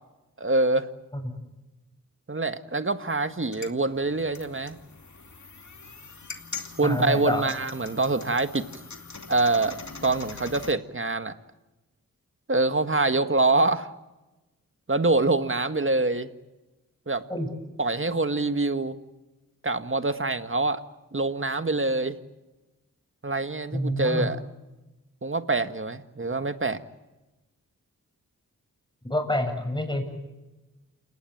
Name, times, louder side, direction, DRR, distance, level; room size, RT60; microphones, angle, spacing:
voice 1, 0.4-0.9 2.3-4.8 6.8-8.6 9.3-11.3 12.5-13.9 14.9-16.3 17.1-17.2 17.8-19.0 19.6-20.8 21.1-22.2 23.2-24.4 25.2-26.8, right 2 dB, 35° right, 9 dB, 1.7 m, -25 dB
sound 1, 3.3-10.7, left 4 dB, 55° left, 2.6 m, -42 dB
voice 2, 6.8-7.5 17.3-17.5 23.7-24.3 29.1-30.0, left 1 dB, 15° left, 5 dB, 7.6 m, -27 dB
29.0 x 18.5 x 8.7 m, 1.1 s
wide cardioid pair, 55°, 34 cm